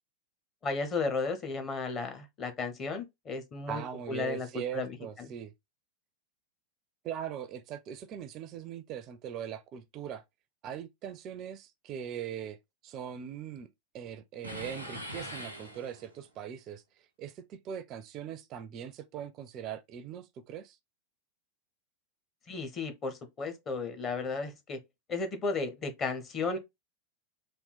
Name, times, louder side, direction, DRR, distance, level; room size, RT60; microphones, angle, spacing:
voice 1, 0.6-3.8 4.1-5.3 22.5-24.8 25.1-26.6, left 4 dB, 25° left, 0.9 m, -34 dB
voice 2, 3.7-5.5 7.0-10.2 10.6-12.6 12.8-13.7 13.9-20.8, right 9 dB, 35° right, 0.4 m, -40 dB
sound 1, 14.4-16.3, equal, 85° left, 0.9 m, -42 dB
3.6 x 2.4 x 3.9 m
figure-of-eight pair, 90°, 0 cm